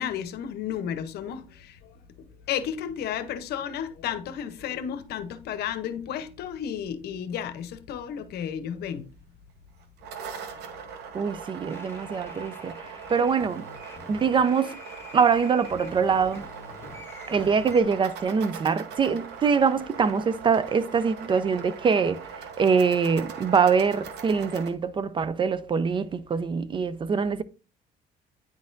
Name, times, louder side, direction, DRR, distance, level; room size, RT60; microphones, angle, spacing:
voice 1, 0.0-1.7 2.5-9.1, left 9 dB, 70° left, 0.8 m, -32 dB
sound 1, 9.8-24.7, right 6 dB, 85° right, 1.0 m, -41 dB
voice 2, 11.1-12.8 13.1-13.7 14.1-14.8 15.1-16.4 17.3-22.2 22.6-27.4, right 6 dB, 30° right, 0.4 m, -24 dB
sound 2, 11.7-17.8, left 3 dB, 15° left, 1.4 m, -46 dB
9.5 x 4.1 x 2.6 m
cardioid pair, 110°, 17 cm